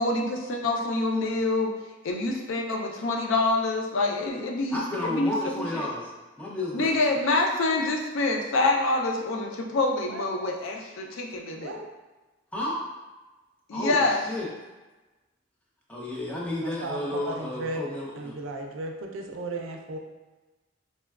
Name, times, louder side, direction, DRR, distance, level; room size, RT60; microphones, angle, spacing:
voice 1, 0.0-1.7 2.0-5.9 6.7-11.8 13.7-14.2, left 2 dB, 85° left, 2 dB, 0.4 m, -26 dB
voice 2, 4.7-6.1 6.4-7.0 12.5-12.8 13.7-14.5 15.9-18.4, left 1 dB, 5° left, -5 dB, 0.5 m, -32 dB
voice 3, 11.5-11.9 16.6-17.0 17.3-17.8 18.2-20.0, right 2 dB, 85° right, 3 dB, 0.4 m, -35 dB
4.1 x 2.2 x 2.3 m, 1.2 s
head